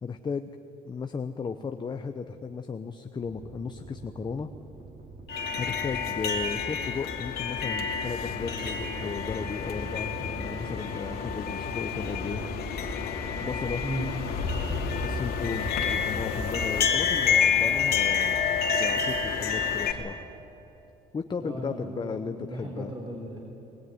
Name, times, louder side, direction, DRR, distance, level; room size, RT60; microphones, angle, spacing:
voice 1, 0.0-0.5 0.8-4.5 5.6-12.4 13.3-13.8 14.9-20.2 21.1-22.9, left 5 dB, 25° left, 7 dB, 0.9 m, -35 dB
sound 1, 3.2-6.9 7.8-17.5, right 3 dB, 45° right, 3.4 m, -46 dB
sound 2, 5.3-19.9, left 6 dB, 70° left, 2.5 m, -28 dB
voice 2, 21.4-23.4, equal, 25° right, -1 dB, 4.0 m, -36 dB
21.0 x 20.0 x 9.6 m, 3.0 s
cardioid pair, 110°, 17 cm